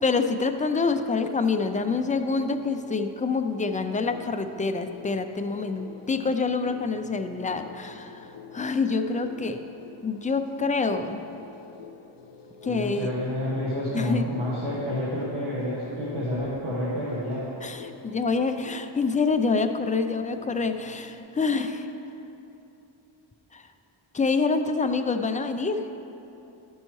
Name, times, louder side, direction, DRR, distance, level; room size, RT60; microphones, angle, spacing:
voice 1, 0.0-8.3 8.5-9.6 10.0-11.2 12.6-13.1 13.9-14.2 17.6-21.9 23.5-23.6 24.1-25.9, left 4 dB, 20° left, 7 dB, 0.3 m, -26 dB
sound 1, 1.7-21.2, left 6 dB, 65° left, 0.6 m, -47 dB
voice 2, 12.6-17.4, left 1 dB, 85° right, -9 dB, 1.4 m, -29 dB
11.5 x 5.5 x 3.1 m, 2.8 s
cardioid pair, 70°, 48 cm